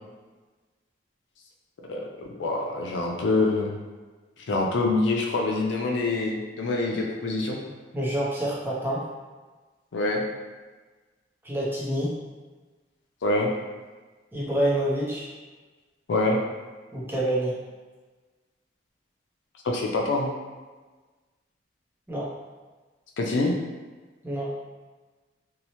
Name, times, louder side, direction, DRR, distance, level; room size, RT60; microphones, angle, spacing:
voice 1, 1.9-3.8 4.5-7.6 9.9-10.2 13.2-13.5 16.1-16.4 19.6-20.3 23.2-23.5, left 2 dB, 80° left, 0 dB, 0.4 m, -25 dB
voice 2, 7.9-9.0 11.4-12.1 14.3-15.3 16.9-17.6 22.1-22.3 24.2-24.5, right 1 dB, 10° right, -6 dB, 0.5 m, -27 dB
2.7 x 2.0 x 2.8 m, 1.3 s
head